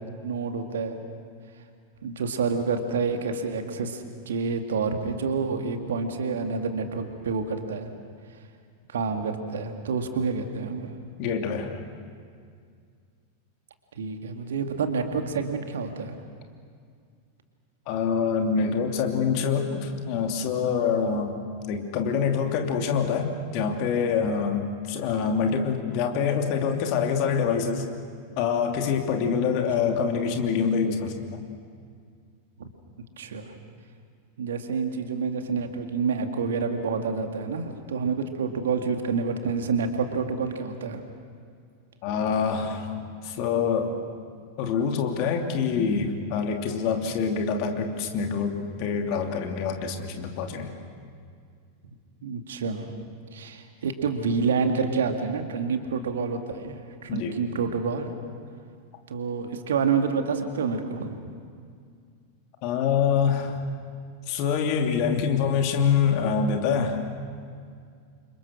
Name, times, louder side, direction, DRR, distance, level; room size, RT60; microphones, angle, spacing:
voice 1, 0.2-1.0 2.0-7.9 8.9-11.0 14.0-16.2 29.9-30.0 33.2-33.5 34.4-41.0 52.2-52.9 53.3-58.1 59.1-61.2, right 5 dB, 65° right, 6 dB, 2.2 m, -28 dB
voice 2, 11.2-11.7 17.9-21.4 21.7-27.8 28.4-31.4 42.0-42.9 43.2-43.9 44.6-50.7 57.1-57.4 62.6-63.6 64.3-67.0, left 6 dB, 45° left, 3 dB, 2.8 m, -25 dB
29.5 x 25.5 x 6.4 m, 2.2 s
figure-of-eight pair, 90°, 0 cm